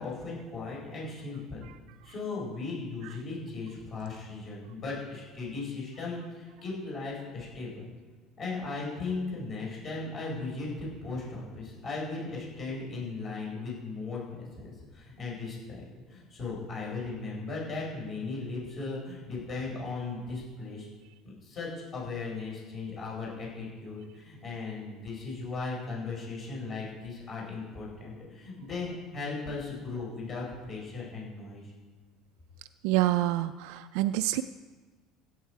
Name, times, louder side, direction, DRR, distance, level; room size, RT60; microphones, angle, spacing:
voice 1, 0.0-1.7 2.0-7.9 8.4-20.9 21.4-31.6, left 3 dB, 35° left, -3 dB, 4.5 m, -37 dB
voice 2, 32.8-34.4, right 15 dB, 80° right, 10 dB, 0.3 m, -27 dB
15.5 x 8.1 x 4.7 m, 1.4 s
cardioid pair, 145°, 0 cm